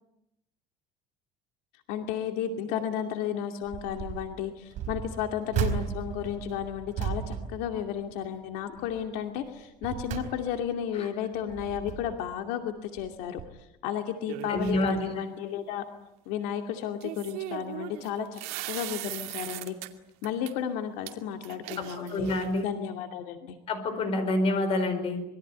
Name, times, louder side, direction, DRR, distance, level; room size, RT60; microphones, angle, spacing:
voice 1, 1.9-13.4 13.8-15.8 16.3-18.4 18.7-19.8 20.2-22.3 22.6-23.6, left 9 dB, 80° left, 5 dB, 2.5 m, -33 dB
sound 1, 3.6-4.3 4.7-8.4 8.7-9.1 9.6-10.8 11.3-12.3 13.0-13.1 13.4-13.5, right 8 dB, 50° right, 4.4 m, -35 dB
sound 2, 14.3-15.0 17.0-19.9 20.2-20.5 21.1-21.2 21.4-22.6, right 15 dB, 75° right, 2.4 m, -38 dB
voice 2, 14.5-15.0 21.8-22.6 23.7-25.2, left 1 dB, 35° left, 10 dB, 4.9 m, -28 dB
26.5 x 22.0 x 9.7 m, 0.84 s
cardioid pair, 170°, 16 cm